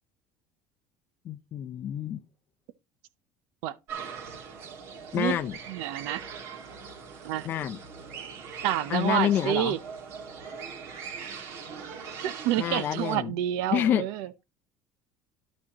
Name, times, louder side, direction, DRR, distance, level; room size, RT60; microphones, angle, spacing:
voice 1, 1.3-2.2 5.1-5.5 7.4-7.8 8.9-9.8 12.6-13.3 13.7-14.1, left 10 dB, 35° left, 0.6 m, -28 dB
sound 1, 3.9-13.2, right 6 dB, 50° right, 2.1 m, -41 dB
voice 2, 5.7-6.3 7.2-7.5 8.6-9.8 12.2-14.3, right 12 dB, 75° right, 0.7 m, -28 dB
11.5 x 6.1 x 3.0 m
cardioid pair, 170°, 6 cm